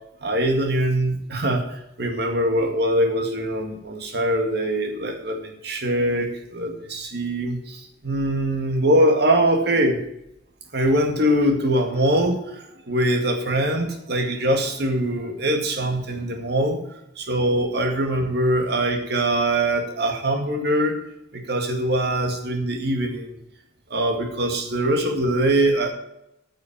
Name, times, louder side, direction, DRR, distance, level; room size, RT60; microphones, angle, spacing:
voice 1, 0.2-10.0 10.7-16.8 17.2-21.0 21.3-23.3 23.9-25.9, right 1 dB, 55° right, 3 dB, 2.1 m, -22 dB
9.5 x 6.7 x 8.7 m, 0.81 s
head